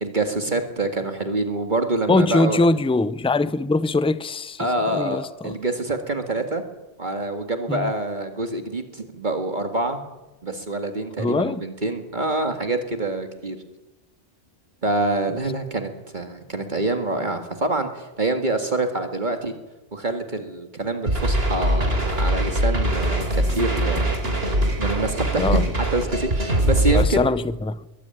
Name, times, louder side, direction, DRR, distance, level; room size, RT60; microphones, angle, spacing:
voice 1, 0.0-2.6 4.6-6.6 7.0-10.0 10.4-13.6 14.8-19.5 19.9-24.2 24.8-27.3, right 2 dB, 45° right, 2.0 m, -26 dB
voice 2, 2.1-4.6 4.9-5.5 7.7-7.9 11.2-11.6 25.4-25.6 26.9-27.8, left 2 dB, 5° left, 0.5 m, -22 dB
sound 1, 21.1-27.1, right 1 dB, 60° right, 3.7 m, -22 dB
22.5 x 15.0 x 9.0 m
omnidirectional pair, 1.1 m